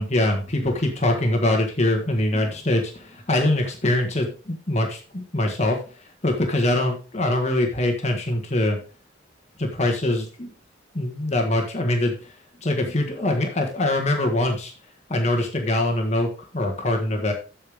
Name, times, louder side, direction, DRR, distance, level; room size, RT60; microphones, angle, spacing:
voice 1, 0.0-5.8 6.2-8.8 9.6-10.5 10.9-12.3 12.6-14.7 15.1-17.3, left 1 dB, 35° left, 2 dB, 1.6 m, -23 dB
13.5 x 5.1 x 3.5 m, 0.35 s
head